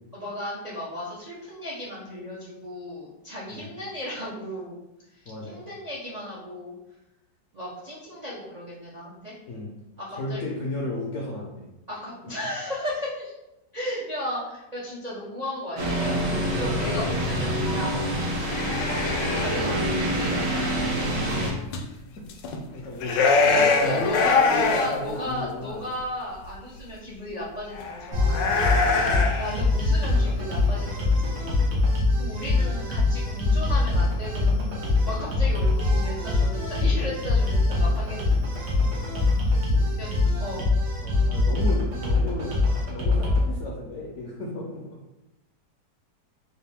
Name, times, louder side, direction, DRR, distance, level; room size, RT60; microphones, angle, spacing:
voice 1, 0.1-4.8 5.1-6.8 7.5-9.4 10.0-10.4 11.9-13.3 13.7-18.0 18.9-21.1 23.5-28.5 29.4-31.4 32.2-38.4 40.0-40.7, left 1 dB, 50° right, -6 dB, 0.4 m, -35 dB
voice 2, 5.3-5.6 9.5-9.7 10.1-11.7 21.9-22.0 22.7-23.1 23.4-25.9 29.0-29.4 31.7-31.9 39.7-39.9 41.0-45.0, left 2 dB, 65° left, -3 dB, 0.8 m, -34 dB
sound 1, 15.8-21.5, equal, 85° right, 1.9 m, -26 dB
sound 2, 18.4-19.6 21.7-21.8 22.3-22.6 22.9-24.9 25.3-25.4 26.5-26.6 27.7-29.6, left 4 dB, 80° left, 1.2 m, -23 dB
sound 3, 28.1-43.4, left 2 dB, 70° right, 1.5 m, -23 dB
4.0 x 2.6 x 3.5 m, 0.94 s
omnidirectional pair, 1.9 m